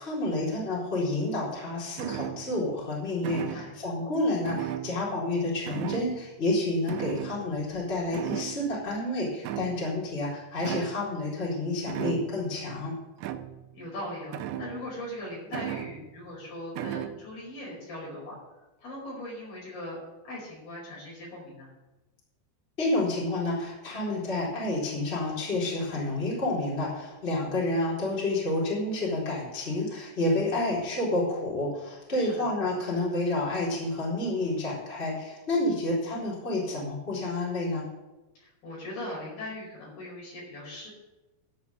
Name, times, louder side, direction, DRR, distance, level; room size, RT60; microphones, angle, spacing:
voice 1, 0.0-12.9 22.8-37.8, left 2 dB, 15° left, -7 dB, 3.6 m, -29 dB
sound 1, 2.0-2.7 3.2-3.9 4.4-5.4 5.7-6.3 6.9-7.8 8.1-8.9 9.4-10.1 10.6-11.1 11.9-12.5 13.2-13.7 14.3-15.0 15.5-16.3 16.8-17.2, right 11 dB, 80° right, 2.6 m, -36 dB
voice 2, 3.3-3.7 13.7-18.3 18.8-20.0 20.2-21.7 32.2-32.4 35.6-35.8 38.3-40.9, left 1 dB, 45° left, -5 dB, 6.5 m, -40 dB
12.0 x 5.9 x 8.5 m, 1.1 s
omnidirectional pair, 5.8 m